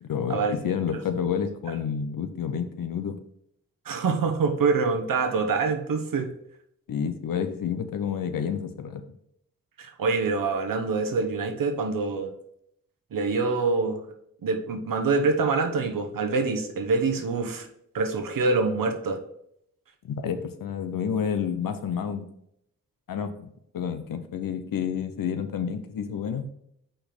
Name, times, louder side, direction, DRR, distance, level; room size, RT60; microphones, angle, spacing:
voice 1, 0.0-3.2 6.9-9.0 20.0-22.3 23.1-23.5 23.7-26.5, left 7 dB, 75° left, 9 dB, 0.8 m, -29 dB
voice 2, 3.8-6.3 9.8-12.3 13.1-14.0 14.4-17.7 17.9-19.2, right 4 dB, 75° right, 5 dB, 1.1 m, -25 dB
5.6 x 4.3 x 5.1 m, 0.73 s
supercardioid pair, 40°, 34 cm